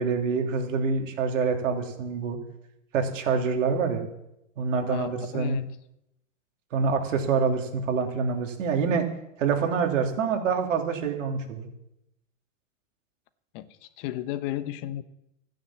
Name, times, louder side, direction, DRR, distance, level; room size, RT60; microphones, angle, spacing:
voice 1, 0.0-2.4 2.9-4.0 4.6-5.5 6.7-9.1 9.4-11.7, right 5 dB, 75° right, 3 dB, 3.0 m, -26 dB
voice 2, 4.9-5.7 13.5-13.7 14.0-15.0, left 13 dB, 45° left, 13 dB, 1.0 m, -33 dB
14.5 x 9.3 x 7.3 m, 0.83 s
hypercardioid pair, 120°, 38 cm